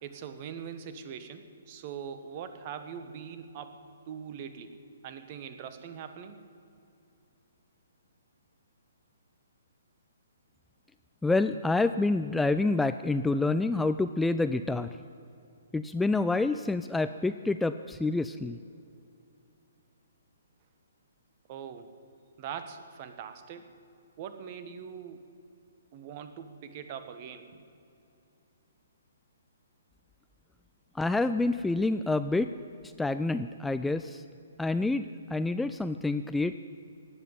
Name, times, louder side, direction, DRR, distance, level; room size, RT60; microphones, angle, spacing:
voice 1, 0.0-4.8 5.0-6.4 21.5-21.9 22.4-23.7 24.2-25.2 25.9-27.5, right 7 dB, 40° right, 9 dB, 1.4 m, -42 dB
voice 2, 11.2-15.0 15.7-18.6 31.0-32.5 33.0-34.2 34.6-36.6, left 3 dB, 5° left, 11 dB, 0.3 m, -28 dB
18.0 x 8.0 x 9.5 m, 2.6 s
figure-of-eight pair, 130°, 0 cm